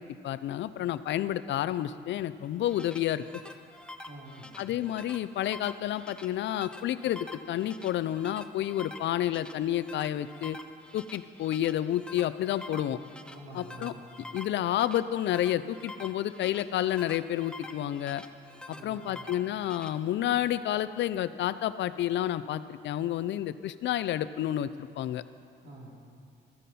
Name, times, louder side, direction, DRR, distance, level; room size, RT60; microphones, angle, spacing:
voice 1, 0.0-3.4 4.6-10.6 10.9-13.0 13.5-13.9 14.3-18.2 18.8-25.2, left 12 dB, 65° left, 15 dB, 0.4 m, -30 dB
sound 1, 2.4-19.9, left 1 dB, 5° left, 0.6 m, -47 dB
voice 2, 4.0-4.6 13.2-14.2 18.7-19.3 25.6-26.0, right 1 dB, 75° right, -4 dB, 3.1 m, -47 dB
13.5 x 9.2 x 4.2 m, 2.3 s
cardioid pair, 90°, 20 cm